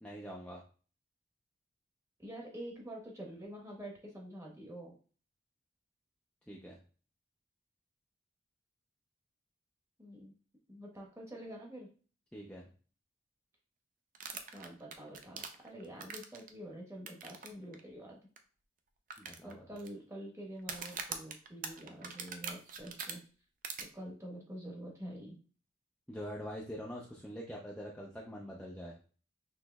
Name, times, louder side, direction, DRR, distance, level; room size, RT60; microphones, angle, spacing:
voice 1, 0.0-0.6 6.5-6.8 12.3-12.6 19.2-19.7 26.1-29.0, equal, 5° left, -3 dB, 0.5 m, -44 dB
voice 2, 2.2-5.0 10.0-10.3 10.7-11.9 14.5-18.2 19.4-23.2 23.8-25.4, right 1 dB, 15° right, -1 dB, 1.1 m, -47 dB
sound 1, 14.1-16.5 17.1-17.5 17.7-17.8 18.4-18.5 19.1-19.9 20.6-23.1 23.6-23.8, right 6 dB, 45° right, 0.5 m, -42 dB
6.1 x 3.1 x 2.3 m, 0.39 s
head